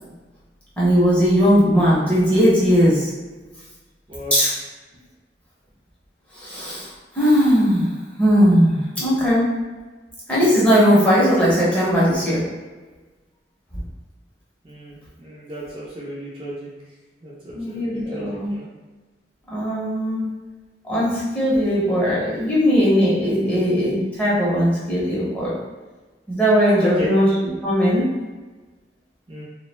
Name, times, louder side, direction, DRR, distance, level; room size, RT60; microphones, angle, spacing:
voice 1, 0.8-3.1 4.3-4.5 6.3-7.9 8.2-9.5 10.3-12.4 17.5-18.5 19.5-20.2 20.8-25.5 26.3-27.3 27.6-28.1, equal, 10° left, -8 dB, 0.7 m, -18 dB
voice 2, 14.6-16.7 17.2-18.7 26.8-27.1 29.3-29.4, left 1 dB, 30° right, -7 dB, 0.5 m, -33 dB
2.2 x 2.0 x 3.0 m, 1.3 s
head